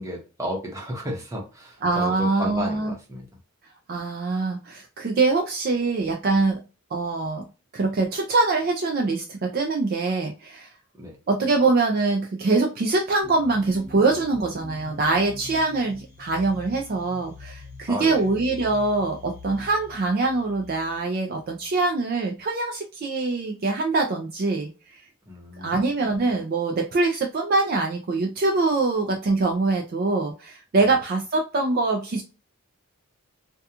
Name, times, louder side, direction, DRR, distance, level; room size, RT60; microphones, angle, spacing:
voice 1, 0.0-3.3 11.0-11.2 17.9-18.3 25.3-25.7, equal, 15° right, -1 dB, 0.8 m, -33 dB
voice 2, 1.8-2.9 3.9-6.6 6.9-7.5 7.7-10.7 11.3-25.0 25.6-32.2, right 3 dB, 45° right, 2 dB, 0.3 m, -24 dB
sound 1, 13.2-21.8, left 3 dB, 10° left, 1.2 m, -44 dB
2.8 x 2.2 x 2.3 m, 0.32 s
head